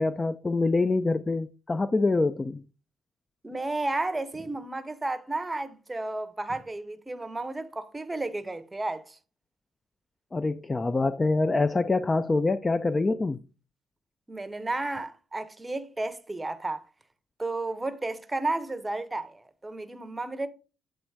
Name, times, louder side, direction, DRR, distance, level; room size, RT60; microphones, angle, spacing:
voice 1, 0.0-2.6 10.3-13.4, left 3 dB, 25° left, 0.3 m, -25 dB
voice 2, 3.4-9.2 14.3-16.8 17.4-20.5, right 2 dB, 15° right, 0.7 m, -32 dB
7.7 x 3.1 x 4.6 m
cardioid pair, 90°, 0 cm